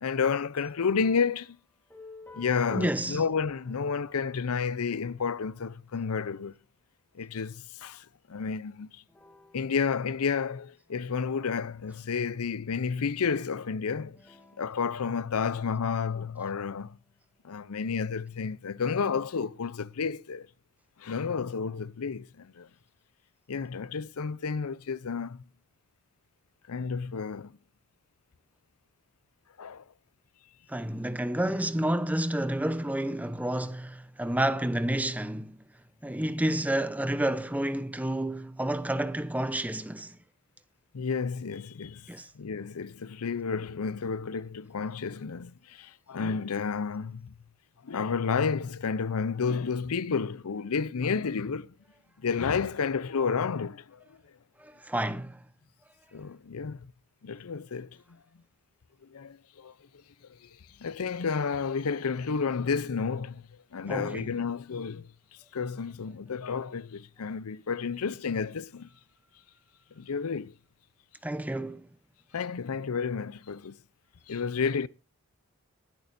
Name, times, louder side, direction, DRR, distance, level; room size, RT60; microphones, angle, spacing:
voice 1, 0.0-1.6 2.3-6.5 7.1-9.0 9.5-14.2 14.6-17.0 17.4-20.5 21.0-22.7 23.5-25.4 26.7-27.6 29.6-29.8 40.9-42.1 42.3-47.3 47.8-51.7 52.2-54.2 56.1-56.9 57.2-58.2 59.1-59.7 60.8-63.4 63.7-65.1 65.5-68.9 70.0-70.5 72.3-73.8 74.3-74.9, left 5 dB, 75° left, 0.6 m, -31 dB
sound 1, 0.8-6.7 9.1-12.9 14.1-16.8, left 3 dB, 10° left, 2.3 m, -57 dB
voice 2, 2.7-3.2 30.7-35.6 36.0-40.2 42.1-42.3 54.6-55.4 63.9-64.3 71.2-71.9, right 1 dB, 5° right, 0.7 m, -30 dB
20.5 x 11.0 x 2.6 m
head